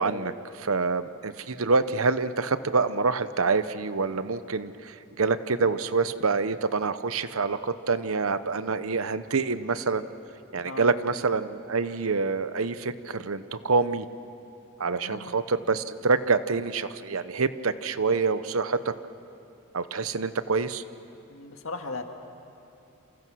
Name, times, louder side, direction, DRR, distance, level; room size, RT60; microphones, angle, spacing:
voice 1, 0.0-10.0 10.5-14.1 14.8-18.9 19.7-20.8, right 4 dB, 75° right, 12 dB, 0.9 m, -26 dB
voice 2, 10.7-11.0 14.9-15.4 21.3-22.0, left 3 dB, 70° left, 4 dB, 2.0 m, -37 dB
28.0 x 28.0 x 6.3 m, 3.0 s
head